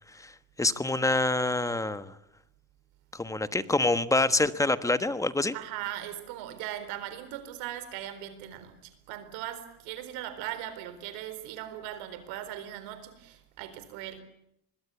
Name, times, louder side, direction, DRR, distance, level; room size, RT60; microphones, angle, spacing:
voice 1, 0.6-2.1 3.1-5.5, left 2 dB, 10° left, 1.3 m, -26 dB
voice 2, 5.5-14.2, right 12 dB, 85° right, 4.3 m, -39 dB
25.5 x 21.0 x 8.3 m
cardioid pair, 120°, 35 cm